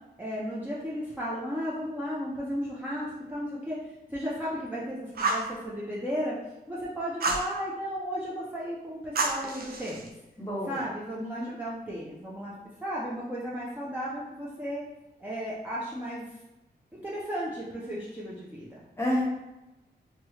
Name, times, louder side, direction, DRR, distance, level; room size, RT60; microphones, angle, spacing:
voice 1, 0.2-3.8 4.1-6.3 6.7-10.1 10.7-12.5 12.8-14.8 15.2-16.3 16.9-18.8, equal, 10° right, -8 dB, 0.5 m, -34 dB
Fire, 5.2-5.5 7.2-7.5 9.2-10.1, right 3 dB, 65° right, 0.4 m, -29 dB
voice 2, 10.4-10.8 11.2-11.5 19.0-19.2, left 1 dB, 15° left, -4 dB, 0.8 m, -30 dB
3.0 x 2.3 x 3.1 m, 0.98 s
wide cardioid pair, 135°, 17 cm